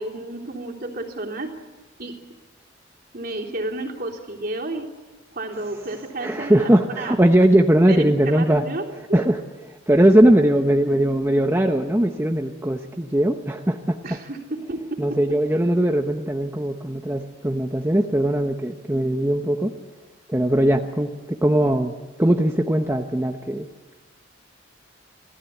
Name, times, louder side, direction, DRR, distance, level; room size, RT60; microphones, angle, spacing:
voice 1, 0.0-1.5 2.0-2.1 3.1-4.9 5.3-6.7 7.0-7.2 7.9-9.3 14.0-15.0, right 2 dB, 50° right, 1 dB, 3.4 m, -31 dB
voice 2, 6.2-8.7 9.1-14.2 15.0-19.7 20.3-21.9 22.2-23.7, right 1 dB, 15° right, 4 dB, 0.9 m, -20 dB
26.5 x 16.5 x 8.4 m, 1.2 s
head